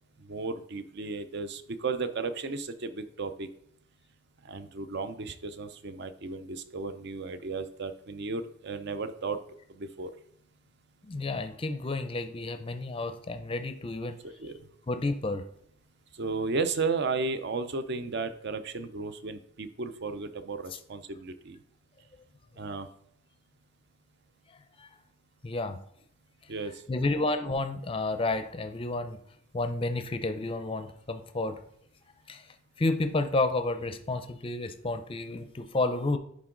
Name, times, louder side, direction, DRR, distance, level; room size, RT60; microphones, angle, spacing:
voice 1, 0.2-3.5 4.4-9.4 9.7-10.1 14.2-14.6 16.1-21.6 22.6-22.9 26.5-26.8, right 4 dB, 50° right, 11 dB, 0.5 m, -34 dB
voice 2, 11.0-14.2 14.9-15.4 24.8-24.9 25.4-25.8 26.9-29.2 29.5-31.6 32.3-32.4 32.8-36.2, left 2 dB, 25° left, 9 dB, 0.5 m, -30 dB
10.5 x 3.8 x 3.8 m, 0.69 s
head